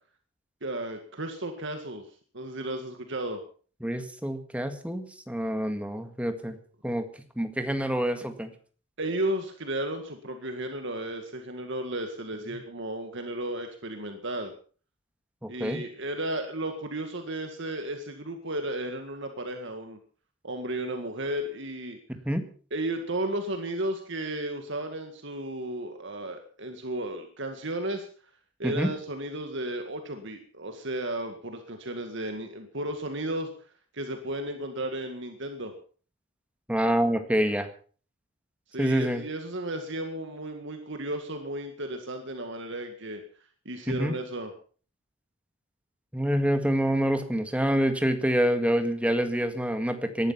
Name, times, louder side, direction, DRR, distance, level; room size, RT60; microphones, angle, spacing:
voice 1, 0.6-2.1 2.3-3.4 9.0-14.5 15.5-20.0 20.4-22.0 22.7-28.1 28.6-33.5 33.9-35.7 38.7-43.2 43.7-44.5, right 1 dB, 60° right, 6 dB, 2.0 m, -34 dB
voice 2, 3.8-6.6 6.8-7.1 7.4-8.5 15.4-15.8 22.3-22.4 28.6-28.9 36.7-37.7 38.8-39.2 43.9-44.1 46.1-50.3, equal, 5° right, 8 dB, 1.8 m, -26 dB
18.5 x 12.0 x 5.8 m, 0.42 s
head